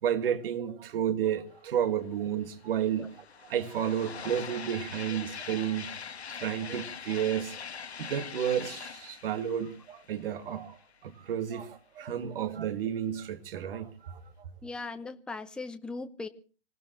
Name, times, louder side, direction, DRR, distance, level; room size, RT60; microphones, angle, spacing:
voice 1, 0.0-3.1 3.5-5.9 6.3-7.6 8.0-14.2, right 9 dB, 60° right, 2.0 m, -31 dB
sound 1, 2.0-2.1 2.3-11.0, left 7 dB, 85° left, 1.6 m, -43 dB
voice 2, 14.6-16.3, left 3 dB, 5° left, 0.9 m, -39 dB
25.5 x 18.0 x 2.9 m
hypercardioid pair, 125°, 32 cm